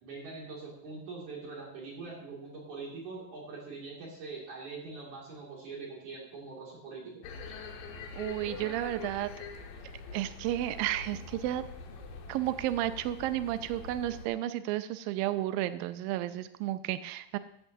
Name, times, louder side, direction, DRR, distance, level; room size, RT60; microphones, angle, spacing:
voice 1, 0.0-7.3, right 4 dB, 60° right, -4 dB, 3.7 m, -43 dB
sound 1, 7.2-14.3, left 4 dB, 80° left, 3.0 m, -44 dB
voice 2, 8.2-9.3 10.1-11.6 12.3-17.4, right 14 dB, 85° right, 12 dB, 2.3 m, -32 dB
14.5 x 12.0 x 2.7 m, 0.76 s
omnidirectional pair, 4.0 m